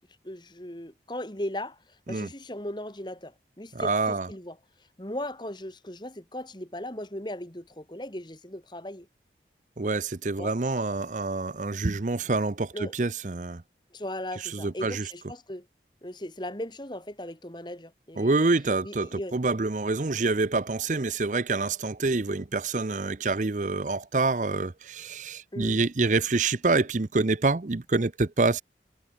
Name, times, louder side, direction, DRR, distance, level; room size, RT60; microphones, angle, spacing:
voice 1, 0.2-1.8 2.1-4.6 5.0-9.1 10.4-10.5 12.7-12.9 13.9-15.7 16.0-18.4 18.8-19.4 25.5-25.8, left 1 dB, 25° left, 2.5 m, -37 dB
voice 2, 3.7-4.3 9.8-13.6 14.4-15.1 18.2-28.6, right 3 dB, 45° right, 0.7 m, -26 dB
head